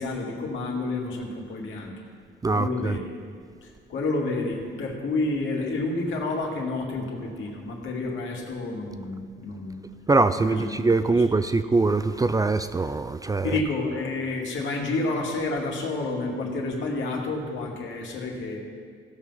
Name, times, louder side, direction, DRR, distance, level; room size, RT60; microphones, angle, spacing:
voice 1, 0.0-1.9 2.5-3.1 3.6-9.8 10.3-11.2 13.4-18.6, left 3 dB, 75° left, -1 dB, 2.2 m, -30 dB
voice 2, 2.4-3.0 10.1-13.5, right 3 dB, 20° right, 11 dB, 0.4 m, -23 dB
16.0 x 6.2 x 5.6 m, 2.1 s
cardioid pair, 90°, 20 cm